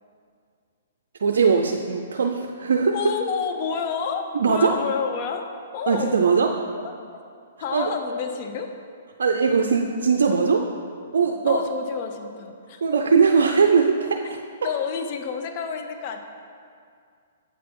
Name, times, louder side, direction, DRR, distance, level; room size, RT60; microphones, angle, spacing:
voice 1, 1.2-2.9 4.3-4.7 5.9-6.5 7.7-7.9 9.2-10.6 11.1-11.6 12.8-14.4, right 5 dB, 80° right, 3 dB, 0.4 m, -20 dB
voice 2, 2.9-5.5 5.7-6.2 6.8-6.9 7.6-8.7 11.5-12.8 14.6-16.2, left 6 dB, 45° left, 6 dB, 0.5 m, -29 dB
7.8 x 4.1 x 4.7 m, 2.3 s
hypercardioid pair, 140°, 0 cm